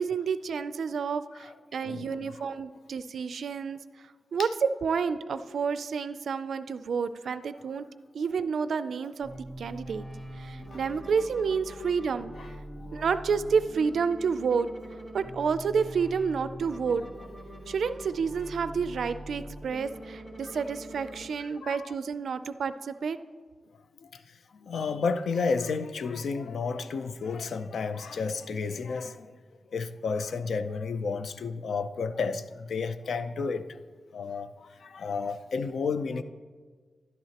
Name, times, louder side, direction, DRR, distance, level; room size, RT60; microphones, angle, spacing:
voice 1, 0.0-3.8 4.3-4.5 4.8-7.9 8.1-9.3 9.6-10.0 10.4-12.3 12.9-14.7 15.1-17.0 17.7-23.2, right 6 dB, 80° right, 12 dB, 0.3 m, -29 dB
voice 2, 1.8-2.5 4.4-4.5 10.7-10.8 12.4-12.5 12.8-13.0 21.6-21.9 24.0-24.2 24.5-29.3 29.7-33.8 34.1-36.2, left 4 dB, 80° left, 11 dB, 0.4 m, -32 dB
sound 1, 9.2-21.2, right 1 dB, 20° left, 1.8 m, -43 dB
11.5 x 10.5 x 2.9 m, 1.5 s
wide cardioid pair, 175°, 0 cm